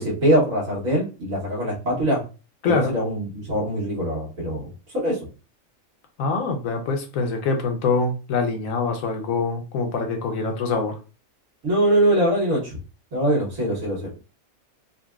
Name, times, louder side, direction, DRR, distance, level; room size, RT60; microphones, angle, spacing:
voice 1, 0.0-2.2 2.6-4.7 4.9-5.2 11.6-12.8 13.1-14.1, right 1 dB, 80° right, -3 dB, 1.6 m, -22 dB
voice 2, 2.6-2.9 6.2-10.9, left 4 dB, 85° left, 4 dB, 1.1 m, -24 dB
3.9 x 2.2 x 2.3 m, 0.33 s
omnidirectional pair, 1.4 m